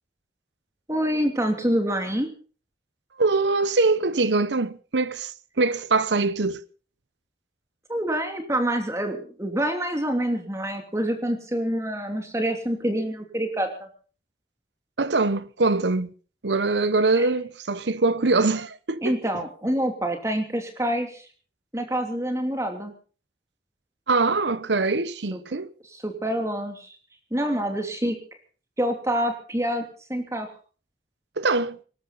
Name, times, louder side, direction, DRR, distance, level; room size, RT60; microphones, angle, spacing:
voice 1, 0.9-2.3 7.9-13.7 17.1-17.3 19.0-21.3 21.7-22.9 25.3-25.4 25.9-27.0 27.3-28.2 28.8-29.8 30.1-30.5, right 1 dB, 15° right, 2.9 m, -26 dB
voice 2, 3.2-6.6 15.0-16.1 16.4-19.3 24.1-25.7 31.4-31.8, right 3 dB, 90° right, 0.9 m, -23 dB
24.0 x 12.5 x 4.1 m
head